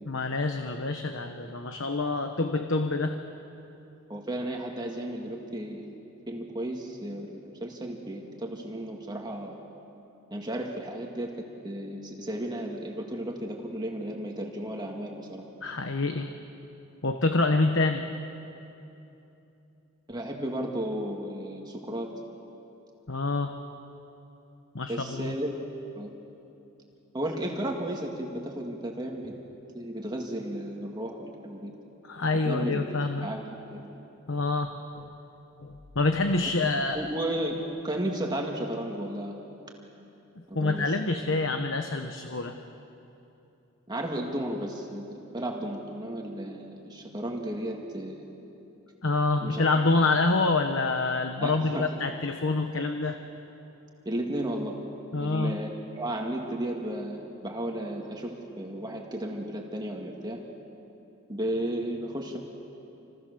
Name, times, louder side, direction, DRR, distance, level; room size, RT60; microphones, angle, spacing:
voice 1, 0.1-3.2 15.6-16.4 17.0-18.0 23.1-23.6 24.7-25.3 32.0-33.3 34.3-35.1 35.6-37.0 40.5-42.6 49.0-53.2 55.1-55.6, left 3 dB, 60° left, 6 dB, 1.1 m, -27 dB
voice 2, 4.1-6.0 6.3-9.5 10.3-11.4 11.6-15.4 20.1-22.1 24.9-25.5 25.9-26.1 27.1-29.4 29.7-31.7 32.4-33.9 36.9-39.4 40.5-41.1 43.9-48.2 49.4-49.7 51.4-51.9 54.1-54.8 55.2-55.7 56.0-60.4 61.3-62.4, right 1 dB, 20° right, 0 dB, 2.1 m, -34 dB
29.5 x 26.5 x 6.9 m, 2.9 s
head